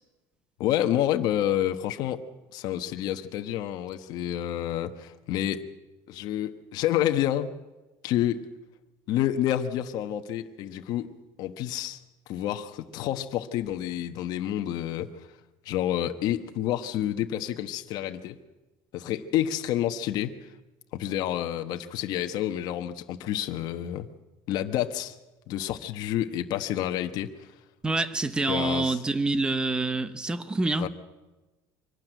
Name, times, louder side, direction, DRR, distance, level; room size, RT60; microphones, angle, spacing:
voice 1, 0.6-2.2 2.5-5.6 6.1-7.5 8.0-8.4 9.1-11.1 11.4-12.0 12.3-15.1 15.6-18.4 18.9-20.3 20.9-24.1 24.5-25.1 25.5-27.3 28.5-29.0 30.8-30.9, left 12 dB, 50° left, 1.1 m, -29 dB
voice 2, 27.8-30.9, right 2 dB, 10° right, 0.8 m, -26 dB
23.5 x 12.5 x 9.1 m
cardioid pair, 170°, 9 cm